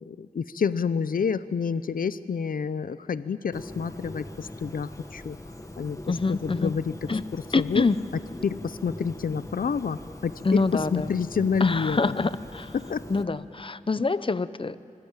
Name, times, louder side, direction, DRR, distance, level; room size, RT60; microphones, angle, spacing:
voice 1, 0.0-5.4 5.8-6.9 7.3-7.8 8.4-12.0 12.7-13.0, left 6 dB, 85° left, 15 dB, 0.5 m, -28 dB
Bird, 3.5-13.2, left 1 dB, 25° left, 1.6 m, -42 dB
voice 2, 6.1-6.7 7.1-7.2 7.5-8.0 10.4-11.1 11.6-12.7 13.1-14.8, left 3 dB, 40° left, 15 dB, 0.7 m, -26 dB
25.5 x 20.0 x 8.9 m, 2.7 s
wide cardioid pair, 70°, 14 cm